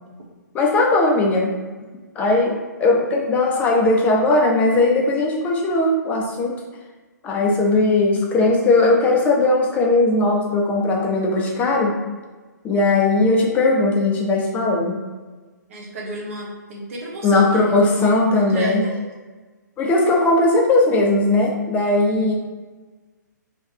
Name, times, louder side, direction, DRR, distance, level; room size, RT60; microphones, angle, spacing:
voice 1, 0.5-1.5 2.2-2.5 2.8-6.5 7.2-12.0 12.6-15.0 17.2-18.8 19.8-22.3, left 2 dB, 15° left, -1 dB, 0.6 m, -18 dB
voice 2, 15.7-18.9, right 2 dB, 45° right, -3 dB, 1.1 m, -32 dB
3.2 x 3.1 x 4.5 m, 1.3 s
figure-of-eight pair, 130°, 10 cm